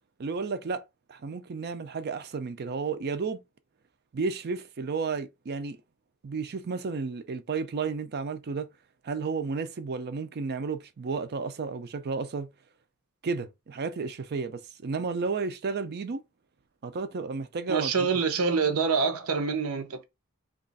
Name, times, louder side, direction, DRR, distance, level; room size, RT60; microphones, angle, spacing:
voice 1, 0.2-0.8 1.1-3.4 4.1-5.8 6.2-8.7 9.0-12.5 13.2-16.2 16.8-18.1, right 4 dB, 50° right, 0.5 m, -32 dB
voice 2, 17.7-20.0, right 5 dB, 80° right, 0.7 m, -26 dB
2.9 x 2.4 x 3.9 m
head